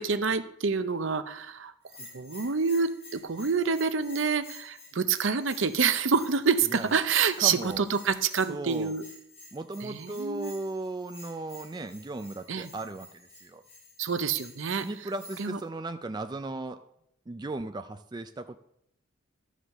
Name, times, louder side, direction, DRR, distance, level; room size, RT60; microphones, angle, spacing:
voice 1, 0.0-1.7 2.1-9.0 9.8-10.5 12.5-12.7 14.0-14.9 15.4-15.6, right 5 dB, 65° right, 11 dB, 0.7 m, -27 dB
Bell, 1.8-15.6, left 2 dB, 30° left, 5.2 m, -51 dB
voice 2, 7.4-7.9 8.5-9.0 9.5-13.6 14.8-16.8 17.3-18.6, right 2 dB, 20° right, 8 dB, 0.4 m, -36 dB
13.0 x 5.0 x 6.5 m, 0.76 s
head